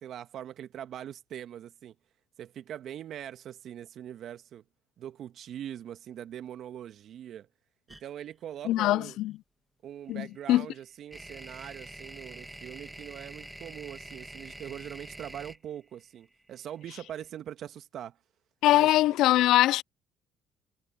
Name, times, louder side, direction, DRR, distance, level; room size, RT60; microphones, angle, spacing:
voice 1, 0.0-1.9 2.4-4.6 5.0-7.5 7.9-9.2 9.8-18.2 18.7-19.1, right 10 dB, 60° right, 1.7 m, -42 dB
sound 1, 7.9-8.0 10.1-17.1, right 1 dB, 10° right, 2.3 m, -45 dB
voice 2, 8.7-9.3 10.1-10.7 18.6-19.8, left 15 dB, 70° left, 0.4 m, -22 dB
hypercardioid pair, 60°, 0 cm